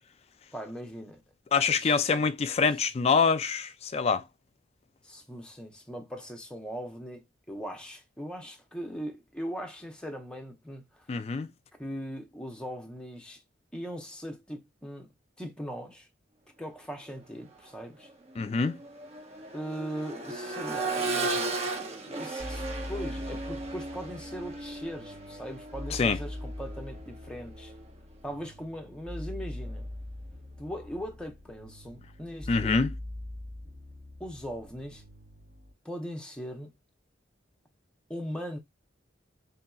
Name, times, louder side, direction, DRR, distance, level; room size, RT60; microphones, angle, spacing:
voice 1, 0.5-1.2 1.8-2.2 5.0-11.2 11.8-13.4 13.7-15.1 15.4-16.1 16.6-18.1 19.5-21.6 22.1-27.7 28.2-29.8 30.6-32.8 34.2-35.0 35.8-36.7 38.1-38.6, equal, 5° left, 0.7 m, -40 dB
voice 2, 1.5-4.2 11.1-11.5 18.4-18.8 25.9-26.2 32.5-32.9, left 5 dB, 35° left, 0.3 m, -25 dB
Accelerating revving vroom, 17.4-17.6 18.0-27.9 29.6-29.7, right 3 dB, 35° right, 0.6 m, -36 dB
sound 1, 22.4-35.7, left 1 dB, 55° right, 2.6 m, -42 dB
3.7 x 2.8 x 2.3 m
head